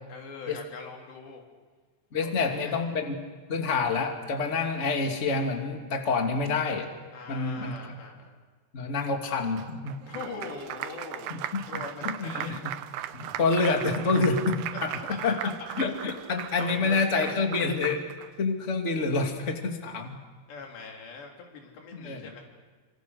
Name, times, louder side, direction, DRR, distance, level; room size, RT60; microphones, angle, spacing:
voice 1, 0.1-1.4 2.2-3.0 7.1-8.4 10.1-11.3 11.7-12.6 14.7-15.3 16.6-17.3 20.5-22.4, left 4 dB, 80° left, 1 dB, 5.8 m, -42 dB
voice 2, 2.1-3.2 3.5-6.9 7.3-7.7 8.7-10.0 11.3-12.6 13.1-18.0 18.4-20.2 21.9-22.3, left 4 dB, 20° left, 3 dB, 2.1 m, -28 dB
Applause, 9.6-18.3, right 12 dB, 75° right, 2.7 m, -38 dB
29.5 x 26.5 x 6.6 m, 1.5 s
omnidirectional pair, 4.9 m